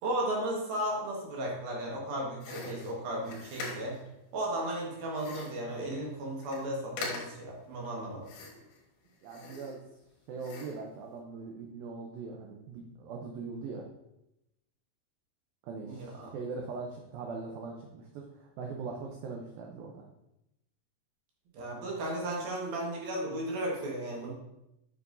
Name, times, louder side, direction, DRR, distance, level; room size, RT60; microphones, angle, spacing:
voice 1, 0.0-4.0 4.3-8.3 15.9-16.3 21.5-24.3, right 1 dB, 65° right, -2 dB, 3.0 m, -35 dB
sound 1, 2.4-4.1 5.1-5.7 6.1-6.2 6.4-6.7 7.0-7.5 8.2-8.8 9.2-10.0 10.4-10.9, left 3 dB, 75° left, 3.5 m, -42 dB
voice 2, 9.2-9.8 10.3-13.9 15.6-20.0, right 4 dB, 80° right, 1 dB, 2.1 m, -41 dB
8.3 x 7.1 x 2.6 m, 0.87 s
omnidirectional pair, 5.1 m